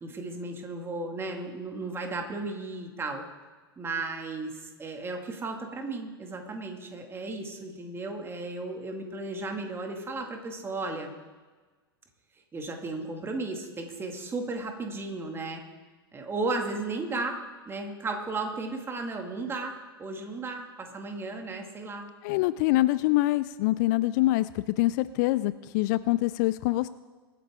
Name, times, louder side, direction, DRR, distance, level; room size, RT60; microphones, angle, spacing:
voice 1, 0.0-3.2 3.8-11.1 12.5-15.6 16.1-17.4 17.7-22.1, right 3 dB, 20° right, 3 dB, 2.3 m, -35 dB
voice 2, 22.2-26.9, left 17 dB, 50° left, 16 dB, 0.4 m, -25 dB
23.5 x 9.2 x 3.7 m, 1.3 s
figure-of-eight pair, 95°, 13 cm